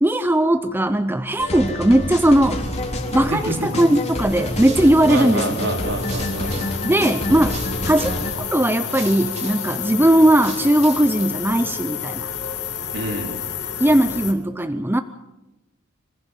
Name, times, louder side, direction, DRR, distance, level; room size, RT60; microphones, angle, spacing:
voice 1, 0.0-2.7 3.1-5.6 6.8-8.1 8.5-12.3 13.8-15.0, right 1 dB, 10° right, 10 dB, 0.6 m, -18 dB
sound 1, 1.4-8.3, left 1 dB, 30° left, 3.6 m, -28 dB
sound 2, 2.1-14.3, left 8 dB, 55° left, 2.6 m, -31 dB
sound 3, 4.3-11.3, right 5 dB, 30° right, 2.8 m, -42 dB
voice 2, 5.1-6.7 12.9-13.4, right 1 dB, 60° right, 3 dB, 4.3 m, -27 dB
26.5 x 15.5 x 7.4 m, 1.0 s
head